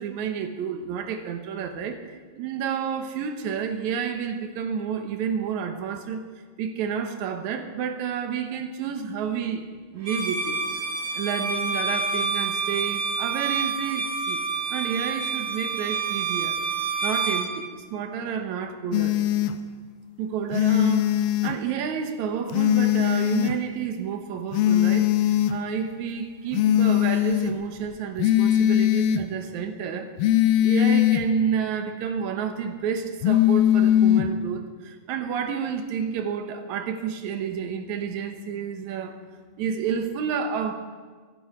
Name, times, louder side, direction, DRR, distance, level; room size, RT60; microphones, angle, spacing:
voice 1, 0.0-6.3 6.6-9.6 9.9-10.6 11.1-14.4 14.7-16.6 17.0-19.2 20.2-30.1 30.6-39.1 39.6-40.7, right 7 dB, 65° right, 6 dB, 1.9 m, -30 dB
Bowed string instrument, 10.0-17.5, right 4 dB, 30° right, 2.1 m, -28 dB
sound 1, 18.9-19.5 20.5-21.5 22.5-23.5 24.5-25.5 26.5-27.5 28.2-29.2 30.2-31.2 33.2-34.3, left 12 dB, 75° left, 2.2 m, -20 dB
24.5 x 11.0 x 4.4 m, 1.5 s
omnidirectional pair, 4.6 m